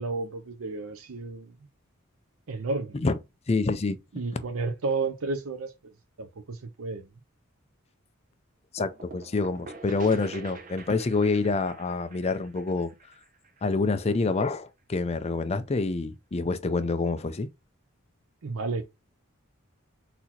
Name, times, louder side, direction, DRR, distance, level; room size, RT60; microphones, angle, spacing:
voice 1, 0.0-1.6 2.5-3.0 4.1-5.9 6.2-7.1 18.4-18.8, right 3 dB, 75° right, 0.6 m, -32 dB
voice 2, 3.5-4.0 8.7-12.9 13.6-17.5, left 3 dB, 30° left, 0.5 m, -27 dB
sound 1, 8.8-14.4, right 3 dB, 40° right, 0.8 m, -46 dB
4.1 x 2.8 x 4.3 m
head